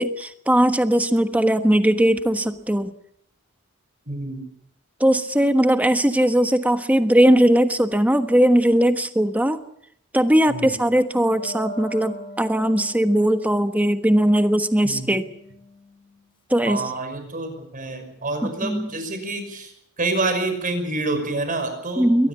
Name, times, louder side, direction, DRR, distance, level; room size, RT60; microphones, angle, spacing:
voice 1, 0.0-2.9 5.0-9.6 10.1-15.2 16.5-16.8 18.4-18.9 22.0-22.3, right 1 dB, 5° right, 8 dB, 1.3 m, -19 dB
voice 2, 4.1-4.4 10.5-10.7 14.8-15.1 16.7-19.7 20.0-22.3, right 2 dB, 40° right, 7 dB, 5.8 m, -27 dB
Wind instrument woodwind instrument, 11.2-16.3, equal, 25° left, 3.2 m, -42 dB
22.5 x 19.0 x 7.2 m, 0.72 s
head